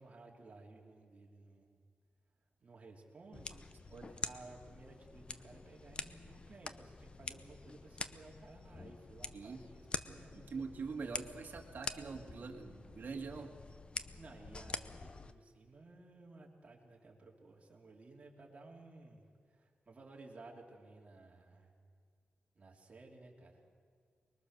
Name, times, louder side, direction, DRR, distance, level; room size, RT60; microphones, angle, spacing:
voice 1, 0.0-1.8 2.6-3.7 4.2-10.6 14.1-21.7 22.5-23.6, right 3 dB, 35° right, -1 dB, 3.3 m, -56 dB
sound 1, 3.3-15.3, left 3 dB, 30° left, 0.7 m, -46 dB
voice 2, 10.1-13.5, right 4 dB, 55° right, 2 dB, 2.1 m, -44 dB
24.5 x 22.0 x 6.7 m, 2.1 s
wide cardioid pair, 165°, 4 cm